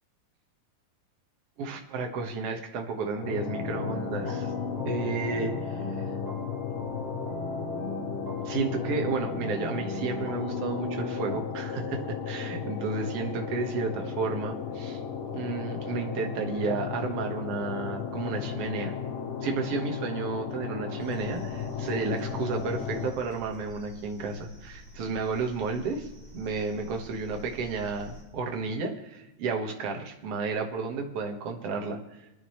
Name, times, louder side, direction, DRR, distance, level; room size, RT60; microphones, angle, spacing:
voice 1, 1.6-4.5 4.8-5.8 8.5-15.0 15.3-18.9 19.4-26.1 26.3-32.0, right 4 dB, 55° right, 3 dB, 2.3 m, -32 dB
sound 1, 3.2-23.1, left 7 dB, 85° left, 2.7 m, -35 dB
sound 2, 3.5-11.4, equal, 40° right, 3.1 m, -38 dB
sound 3, 21.0-28.2, equal, 15° left, 6.7 m, -49 dB
27.5 x 9.8 x 3.2 m, 1.0 s
omnidirectional pair, 3.5 m